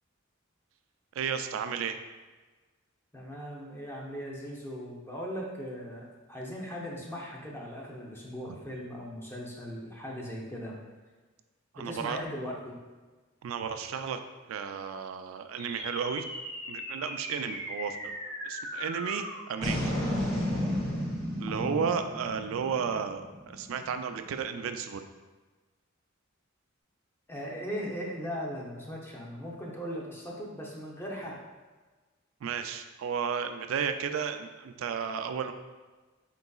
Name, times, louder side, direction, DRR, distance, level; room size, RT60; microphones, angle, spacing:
voice 1, 1.1-2.0 8.5-8.6 11.7-12.2 13.4-14.2 14.5-16.3 16.7-18.1 18.4-19.9 21.4-25.0 32.4-35.5, right 7 dB, 75° right, 8 dB, 0.3 m, -33 dB
voice 2, 3.1-10.8 11.7-12.8 21.5-21.9 27.3-31.4, equal, 10° left, -2 dB, 0.7 m, -38 dB
sound 1, 15.6-24.2, equal, 35° left, 1.5 m, -34 dB
4.5 x 3.9 x 2.3 m, 1.3 s
head